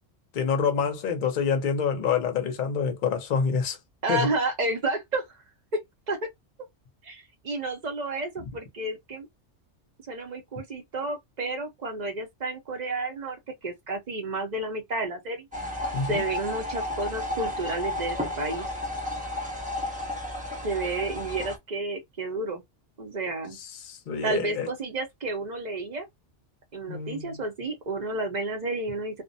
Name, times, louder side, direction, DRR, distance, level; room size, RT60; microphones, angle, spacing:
voice 1, 0.3-3.8 4.1-4.3 15.9-16.2 23.5-24.7 26.9-27.4, left 6 dB, 50° left, 0.7 m, -27 dB
voice 2, 4.0-5.3 5.7-6.3 7.0-9.3 10.1-15.5 16.1-18.7 20.6-22.6 23.0-23.6 24.2-26.1 26.7-29.2, right 2 dB, 45° right, 0.7 m, -31 dB
sound 1, 15.5-21.6, left 1 dB, 10° right, 0.5 m, -32 dB
2.4 x 2.1 x 2.6 m
omnidirectional pair, 1.3 m